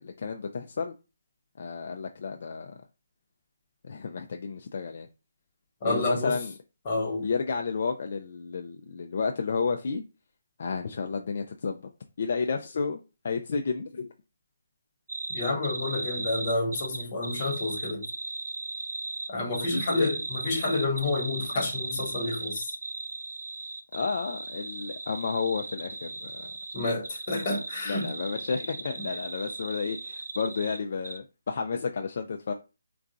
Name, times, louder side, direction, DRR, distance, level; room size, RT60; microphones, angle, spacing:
voice 1, 0.0-0.9 1.6-2.8 3.8-5.1 5.8-6.5 7.2-10.0 10.6-11.8 12.2-13.0 13.2-14.1 19.7-20.1 23.9-26.5 27.9-32.5, left 5 dB, 50° left, 0.3 m, -31 dB
voice 2, 5.8-6.4 6.8-7.3 15.3-18.1 19.3-22.7 26.7-28.1 29.0-29.1, left 2 dB, 30° left, 0.9 m, -29 dB
sound 1, 15.1-30.8 31.0-31.2, right 3 dB, 85° right, 0.5 m, -37 dB
3.8 x 2.3 x 2.5 m
hypercardioid pair, 170°, 0 cm